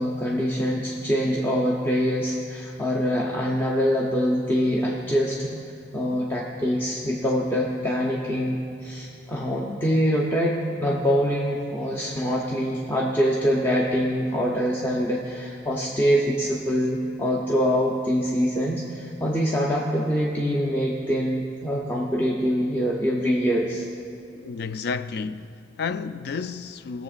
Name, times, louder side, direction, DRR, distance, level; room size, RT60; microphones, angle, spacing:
voice 1, 0.0-5.5 5.9-23.8, equal, 15° left, 0.7 m, -24 dB
voice 2, 24.4-27.0, left 5 dB, 60° left, 0.3 m, -31 dB
19.0 x 7.1 x 2.4 m
head